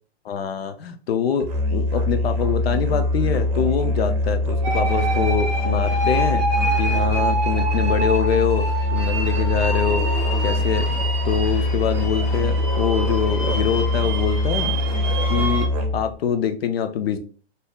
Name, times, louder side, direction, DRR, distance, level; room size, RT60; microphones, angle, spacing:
voice 1, 0.2-10.1 10.4-14.7 15.3-17.2, left 7 dB, 70° left, 8 dB, 0.5 m, -25 dB
Musical instrument, 1.4-16.1, left 1 dB, 40° right, 0.7 m, -23 dB
sound 1, 4.6-15.7, right 2 dB, 10° right, 0.3 m, -27 dB
3.5 x 2.7 x 2.2 m, 0.41 s
hypercardioid pair, 175°, 32 cm